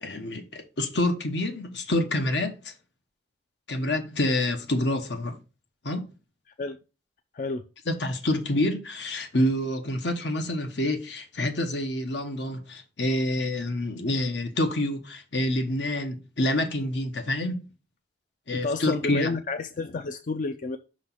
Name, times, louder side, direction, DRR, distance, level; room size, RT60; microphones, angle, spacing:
voice 1, 0.0-2.7 3.7-5.4 5.8-6.1 7.9-17.7 18.5-19.3, left 1 dB, 80° left, 1.1 m, -27 dB
voice 2, 18.5-20.8, left 3 dB, 45° left, 0.4 m, -30 dB
5.9 x 3.2 x 5.6 m
head